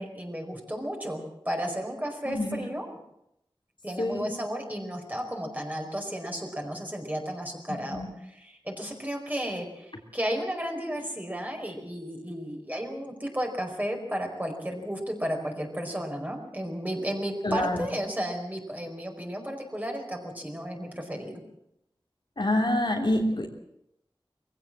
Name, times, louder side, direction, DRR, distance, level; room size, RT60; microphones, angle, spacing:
voice 1, 0.0-2.9 3.8-21.4, equal, 20° right, 2 dB, 5.0 m, -33 dB
voice 2, 2.2-2.6 4.0-4.2 7.7-8.1 17.4-17.8 22.4-23.5, left 1 dB, 60° left, 1 dB, 3.2 m, -27 dB
21.5 x 16.0 x 7.6 m, 0.79 s
wide cardioid pair, 50°, 9 cm